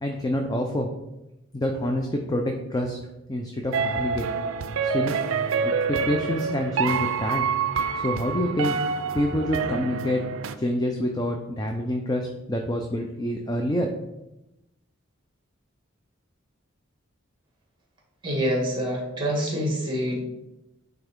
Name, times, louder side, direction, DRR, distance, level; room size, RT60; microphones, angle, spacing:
voice 1, 0.0-0.9 1.5-3.0 3.3-4.2 4.8-5.1 5.6-7.5 7.9-8.8 9.1-10.2 10.6-13.9, left 1 dB, 20° left, 3 dB, 0.5 m, -27 dB
sound 1, 3.7-10.5, right 5 dB, 70° right, 0.4 m, -27 dB
voice 2, 18.2-20.2, equal, 25° right, -1 dB, 1.7 m, -26 dB
9.4 x 3.5 x 3.5 m, 0.93 s
head